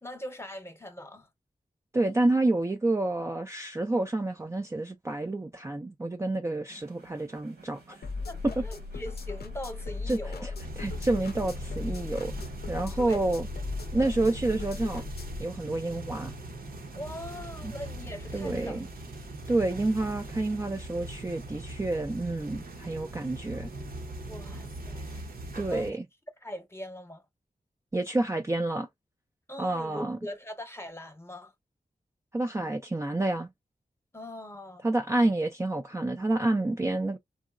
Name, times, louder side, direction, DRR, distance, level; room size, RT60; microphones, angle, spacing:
voice 1, 0.0-1.3 8.3-10.5 13.0-13.2 14.0-14.2 16.9-18.8 24.2-25.3 25.6-26.0 26.4-27.2 29.5-31.5 34.1-34.9, left 1 dB, 15° left, 0.9 m, -41 dB
voice 2, 1.9-8.0 10.1-10.5 10.8-12.3 12.7-13.4 13.9-15.0 15.4-16.3 17.6-17.7 18.3-18.9 19.5-23.7 25.6-26.0 27.9-28.9 29.6-30.2 32.3-33.5 34.8-37.2, right 2 dB, 15° right, 0.4 m, -29 dB
sound 1, 6.7-13.3, right 3 dB, 85° right, 1.3 m, -55 dB
sound 2, 8.0-15.4, left 3 dB, 75° left, 0.5 m, -37 dB
sound 3, 10.6-25.9, right 1 dB, 65° right, 0.7 m, -41 dB
3.6 x 2.0 x 2.4 m
wide cardioid pair, 60°, 17 cm